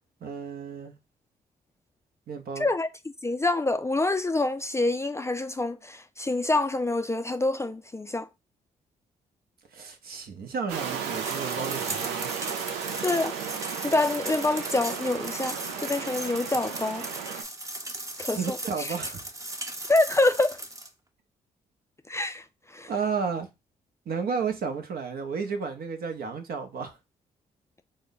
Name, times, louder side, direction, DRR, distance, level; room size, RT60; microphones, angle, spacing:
voice 1, 0.2-0.9 2.3-2.7 9.7-12.3 18.3-19.3 22.9-23.5 24.1-27.0, right 5 dB, 65° right, 0.8 m, -32 dB
voice 2, 3.2-8.3 13.0-13.3 13.8-17.1 18.2-18.9 19.9-20.6 22.1-22.4 22.7-22.9, left 2 dB, 15° left, 0.4 m, -26 dB
sound 1, 10.7-17.4, right 7 dB, 90° right, 0.4 m, -34 dB
sound 2, 11.1-20.9, right 2 dB, 20° right, 0.7 m, -37 dB
3.2 x 2.1 x 3.8 m
hypercardioid pair, 45°, 17 cm